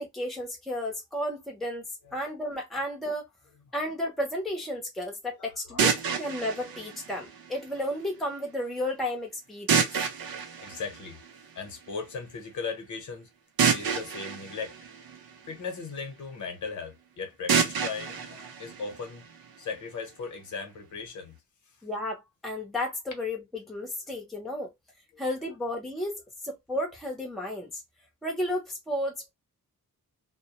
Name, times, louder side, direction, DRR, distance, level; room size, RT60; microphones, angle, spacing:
voice 1, 0.0-1.8 2.1-3.3 3.7-9.9 21.8-24.7 25.2-27.7 28.2-29.3, left 1 dB, ahead, 0.6 m, -33 dB
voice 2, 5.4-6.3 10.6-11.2 11.5-13.3 13.7-14.8 15.5-19.3 19.6-21.3, left 5 dB, 55° left, 0.8 m, -38 dB
sound 1, 5.8-7.8 9.7-11.7 13.6-15.8 17.5-19.5, right 6 dB, 90° right, 0.6 m, -29 dB
2.1 x 2.1 x 2.8 m
wide cardioid pair, 155°, 35 cm